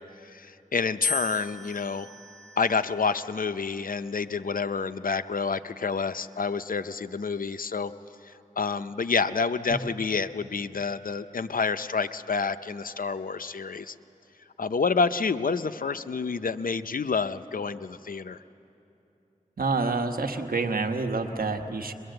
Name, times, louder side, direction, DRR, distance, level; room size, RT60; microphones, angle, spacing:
voice 1, 0.0-2.1 2.6-7.9 8.2-13.9 14.6-18.4, left 5 dB, 75° left, 12 dB, 0.6 m, -28 dB
sound 1, 1.0-3.2 4.0-4.6, left 4 dB, ahead, 2.3 m, -35 dB
voice 2, 19.6-21.9, right 3 dB, 80° right, 5 dB, 1.2 m, -28 dB
22.5 x 21.5 x 7.8 m, 2.8 s
wide cardioid pair, 45°, 15 cm